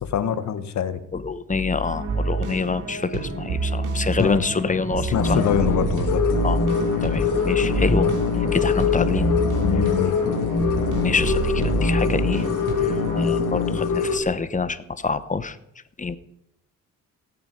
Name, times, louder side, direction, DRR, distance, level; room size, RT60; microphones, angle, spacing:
voice 1, 0.0-1.0 4.2-4.4 5.1-6.2 9.6-10.2, left 8 dB, 65° left, 10 dB, 1.5 m, -24 dB
voice 2, 1.1-5.4 6.4-6.6 7.0-8.1 8.5-9.3 11.0-12.4 12.8-15.6 16.0-16.2, left 4 dB, 25° left, 13 dB, 1.0 m, -26 dB
sound 1, 1.8-13.3, right 3 dB, 85° right, 2.7 m, -28 dB
sound 2, 5.1-14.2, left 5 dB, 85° left, 2.7 m, -23 dB
17.0 x 8.8 x 5.4 m, 0.82 s
cardioid pair, 95°, 31 cm